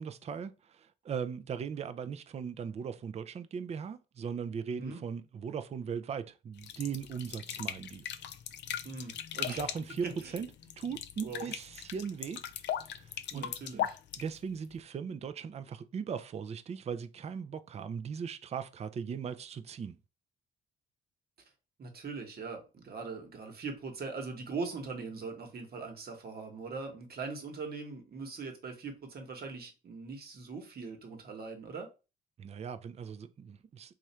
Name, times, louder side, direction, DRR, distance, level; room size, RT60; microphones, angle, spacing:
voice 1, 0.0-8.1 9.5-10.1 10.3-10.5 10.8-12.4 12.9-13.9 14.2-20.0 32.4-33.9, right 6 dB, 35° right, 0.4 m, -39 dB
sound 1, 6.6-14.8, left 10 dB, 60° left, 0.4 m, -39 dB
voice 2, 8.8-9.7 10.0-10.4 11.2-11.5 13.3-14.0 21.8-31.9, right 4 dB, 50° right, 1.1 m, -41 dB
3.1 x 2.4 x 4.3 m
cardioid pair, 90°, 20 cm